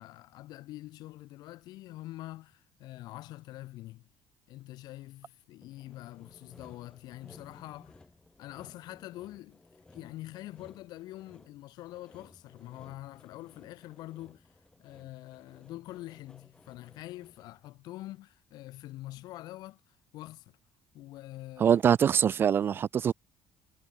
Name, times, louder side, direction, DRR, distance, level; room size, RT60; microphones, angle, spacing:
voice 1, 0.0-4.1 4.5-8.1 8.4-9.6 9.9-14.5 14.8-20.6 20.9-22.0, left 16 dB, 75° left, 2.1 m, -45 dB
Sawing, 5.6-17.7, left 3 dB, 10° left, 5.1 m, -58 dB
voice 2, 21.6-23.1, right 8 dB, 30° right, 0.3 m, -23 dB
cardioid pair, 165°, 7 cm